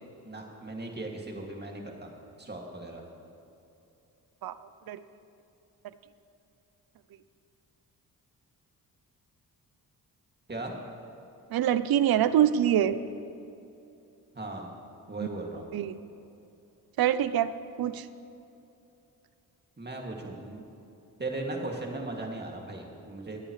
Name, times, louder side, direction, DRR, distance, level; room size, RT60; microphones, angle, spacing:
voice 1, 0.2-2.1 2.4-3.0 10.5-10.7 14.3-14.7 15.1-15.7 19.8-20.6 21.2-23.4, right 2 dB, 25° right, 0 dB, 2.4 m, -37 dB
voice 2, 11.5-13.0 15.7-16.0 17.0-17.5 17.8-18.1, right 10 dB, 65° right, 14 dB, 0.6 m, -24 dB
22.0 x 8.8 x 3.2 m, 2.8 s
supercardioid pair, 50°, 39 cm